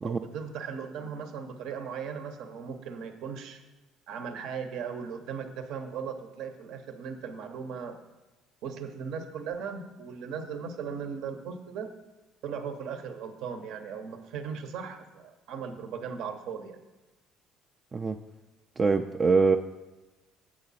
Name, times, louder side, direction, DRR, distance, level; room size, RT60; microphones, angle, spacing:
voice 1, 0.0-3.6 4.1-8.0 8.6-11.9 12.4-16.8, right 6 dB, 70° right, 6 dB, 0.8 m, -37 dB
voice 2, 18.8-19.6, right 4 dB, 30° right, 4 dB, 0.4 m, -23 dB
7.8 x 6.1 x 4.1 m, 1.1 s
supercardioid pair, 70°, 0 cm